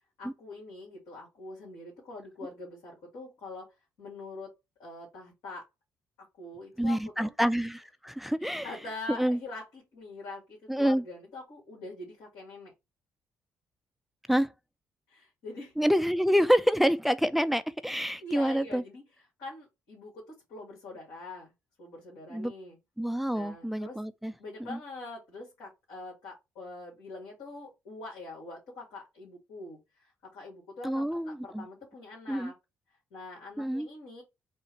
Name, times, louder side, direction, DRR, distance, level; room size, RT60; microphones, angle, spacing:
voice 1, 0.2-4.5 4.8-5.6 6.4-7.3 8.4-12.7 15.1-15.7 18.2-19.0 19.4-21.5 21.8-22.8 23.3-24.0 24.4-32.5 33.1-34.2, left 2 dB, 80° left, 2.2 m, -44 dB
voice 2, 6.8-8.7 9.2-9.4 10.7-11.0 14.3-14.5 15.8-18.8 22.3-22.5 23.0-24.3 24.7-24.8 30.8-31.7 32.3-32.5 33.6-33.9, equal, ahead, 0.4 m, -27 dB
4.4 x 2.5 x 4.4 m
supercardioid pair, 60°, 7 cm